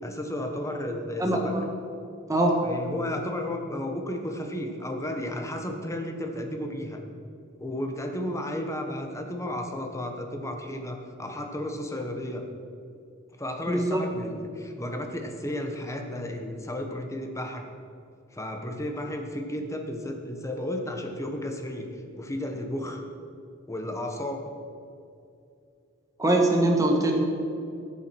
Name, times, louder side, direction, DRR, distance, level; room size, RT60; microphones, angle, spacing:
voice 1, 0.0-1.6 2.6-7.0 7.6-12.4 13.4-17.6 18.3-23.0 23.7-24.4, left 1 dB, 15° left, 4 dB, 1.1 m, -33 dB
voice 2, 1.2-1.6 2.3-2.6 13.7-14.0 26.2-27.1, right 1 dB, 15° right, 1 dB, 1.4 m, -22 dB
13.0 x 7.4 x 6.1 m, 2.5 s
head